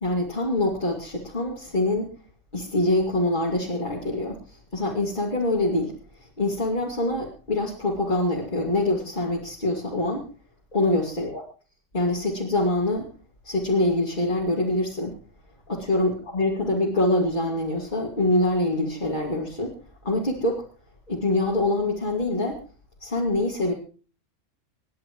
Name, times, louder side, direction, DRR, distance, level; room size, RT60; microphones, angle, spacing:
voice 1, 0.0-2.1 2.5-5.9 6.2-10.3 10.7-11.4 11.9-13.1 13.4-15.2 15.7-19.7 20.0-20.6 21.1-22.6 23.0-23.7, left 1 dB, 40° left, -2 dB, 2.7 m, -25 dB
26.5 x 11.0 x 3.1 m, 0.37 s
omnidirectional pair, 1.3 m